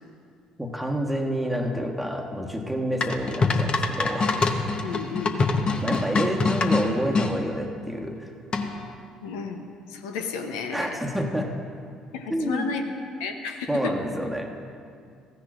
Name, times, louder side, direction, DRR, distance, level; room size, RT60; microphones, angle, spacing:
voice 1, 0.6-4.3 5.8-8.3 10.7-11.5 12.3-12.7 13.7-14.5, equal, 5° right, 1 dB, 1.3 m, -28 dB
sound 1, 3.0-7.3 8.5-8.9, left 3 dB, 35° left, 0.8 m, -24 dB
voice 2, 4.8-5.4 9.2-9.6 9.9-11.0 12.1-12.8 13.2-13.9, left 5 dB, 70° left, 4 dB, 0.7 m, -32 dB
15.0 x 9.9 x 2.4 m, 2.3 s
figure-of-eight pair, 50°, 3 cm